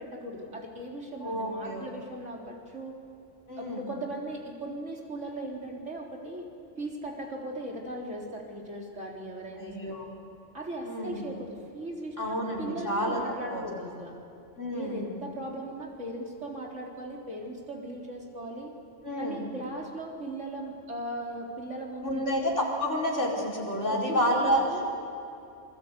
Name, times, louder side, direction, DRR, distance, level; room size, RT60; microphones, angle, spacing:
voice 1, 0.0-3.0 3.6-6.5 6.8-10.0 10.5-14.1 14.7-18.7 19.2-22.4 23.9-24.9, right 1 dB, 80° right, -1 dB, 4.3 m, -38 dB
voice 2, 1.2-1.9 3.5-3.8 9.6-10.1 10.8-11.2 12.2-13.2 13.5-13.9 14.6-15.1 19.0-19.5 22.0-24.6, equal, 80° left, -1 dB, 5.4 m, -29 dB
27.0 x 22.0 x 8.3 m, 2.7 s
omnidirectional pair, 1.2 m